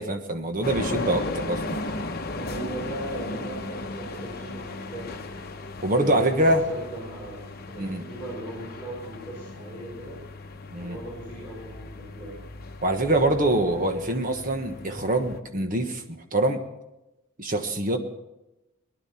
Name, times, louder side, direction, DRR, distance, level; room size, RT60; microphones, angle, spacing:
voice 1, 0.0-1.8 5.8-6.6 7.8-8.1 10.7-11.0 12.8-16.6 17.4-18.0, right 1 dB, 40° right, 5 dB, 1.3 m, -24 dB
sound 1, 0.6-15.4, left 2 dB, 45° left, 0.9 m, -36 dB
voice 2, 2.3-5.2 5.9-10.2 10.7-12.4, right 2 dB, 10° right, -8 dB, 6.0 m, -38 dB
19.5 x 11.5 x 4.3 m, 0.97 s
head